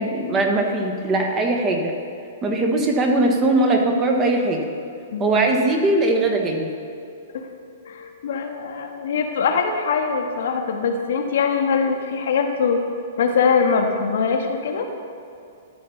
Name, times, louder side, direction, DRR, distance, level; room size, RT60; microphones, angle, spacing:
voice 1, 0.0-2.0 2.4-4.6 5.2-6.7, right 2 dB, 25° right, 2 dB, 1.2 m, -20 dB
voice 2, 5.1-5.5 7.3-7.5 7.8-12.8 13.2-14.8, left 5 dB, 60° left, 4 dB, 1.0 m, -22 dB
13.0 x 4.4 x 5.6 m, 2.6 s
figure-of-eight pair, 110°, 0 cm